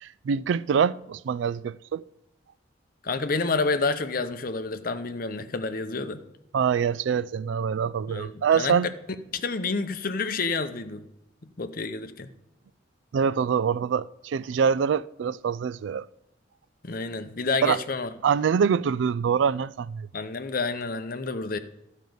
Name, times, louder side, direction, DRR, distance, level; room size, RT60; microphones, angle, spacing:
voice 1, 0.0-2.0 6.5-8.9 13.1-16.1 17.6-17.8 18.2-20.1, right 7 dB, 65° right, 0.3 m, -25 dB
voice 2, 3.0-6.2 8.1-8.8 9.3-11.0 11.4-12.3 16.8-18.1 20.1-21.6, left 3 dB, 45° left, 0.7 m, -29 dB
12.0 x 5.3 x 7.8 m
head